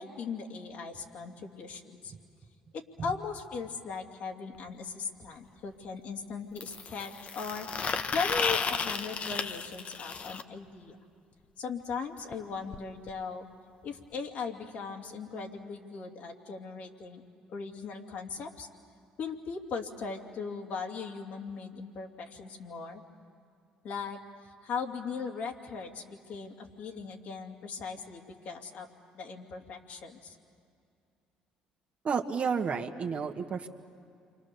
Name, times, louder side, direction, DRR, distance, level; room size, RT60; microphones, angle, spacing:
voice 1, 0.0-2.1 2.7-7.7 8.1-11.0 11.6-13.5 13.8-17.2 17.5-18.7 19.2-23.0 23.8-28.9 29.1-30.4, left 5 dB, 65° left, 2 dB, 2.7 m, -38 dB
sound 1, 4.5-4.6 6.6-10.4 12.3-12.4 12.7-12.8 13.1-13.2 14.1-14.2, left 5 dB, 50° left, 1.1 m, -33 dB
voice 2, 32.0-33.7, right 6 dB, 45° right, 5 dB, 1.7 m, -31 dB
29.0 x 25.0 x 7.0 m, 2.4 s
supercardioid pair, 65°, 3 cm